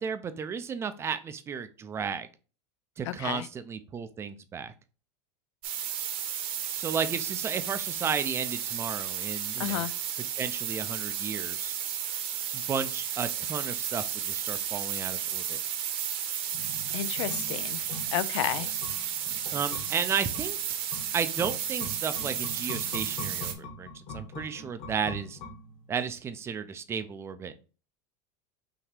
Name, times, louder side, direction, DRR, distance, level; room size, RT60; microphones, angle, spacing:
voice 1, 0.0-2.3 3.0-4.7 6.8-9.9 10.3-11.7 12.5-15.6 19.5-20.6 21.1-25.4 25.9-27.6, right 6 dB, 15° right, 0.4 m, -33 dB
voice 2, 3.1-3.5 9.6-9.9 16.9-17.8 18.1-18.7, left 13 dB, 90° left, 0.4 m, -31 dB
sound 1, 5.6-23.5, right 9 dB, 40° right, 0.8 m, -33 dB
sound 2, 16.5-26.1 26.4-26.5, left 2 dB, 55° left, 1.5 m, -43 dB
5.7 x 2.7 x 3.3 m
supercardioid pair, 150°, 15 cm